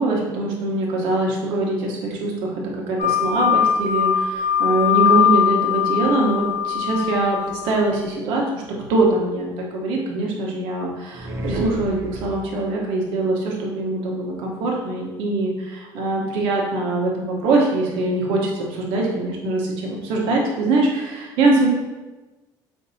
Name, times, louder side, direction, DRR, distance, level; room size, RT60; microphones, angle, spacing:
voice 1, 0.0-2.6 2.9-8.6 8.9-21.7, right 2 dB, 90° right, -1 dB, 0.9 m, -23 dB
sound 1, 3.0-7.8, left 8 dB, 55° left, 0.5 m, -20 dB
sound 2, 11.1-12.7, right 1 dB, 35° right, 0.5 m, -30 dB
5.1 x 2.6 x 2.6 m, 1.1 s
cardioid pair, 165°, 8 cm